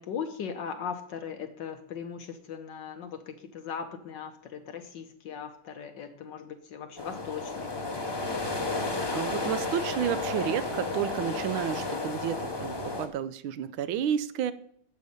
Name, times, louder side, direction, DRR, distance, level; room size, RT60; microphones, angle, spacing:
voice 1, 0.0-8.9, left 7 dB, 65° left, 8 dB, 1.4 m, -39 dB
sound 1, 7.0-13.1, left 2 dB, 30° left, 0.4 m, -32 dB
voice 2, 9.1-14.5, right 9 dB, 75° right, 14 dB, 1.4 m, -31 dB
11.5 x 8.0 x 5.3 m, 0.65 s
omnidirectional pair, 2.4 m